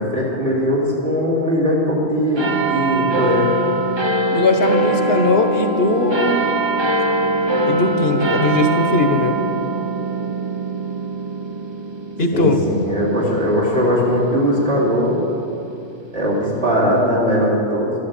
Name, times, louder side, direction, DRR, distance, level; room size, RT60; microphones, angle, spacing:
voice 1, 0.0-3.5 12.3-15.2 16.1-17.9, equal, 65° right, -6 dB, 3.9 m, -19 dB
sound 1, 2.4-15.2 15.9-16.0, right 2 dB, 25° right, 0.9 m, -22 dB
voice 2, 4.3-6.4 7.6-9.4 12.2-12.6, left 2 dB, 60° left, 5 dB, 1.5 m, -19 dB
13.5 x 11.5 x 8.5 m, 2.7 s
omnidirectional pair, 1.2 m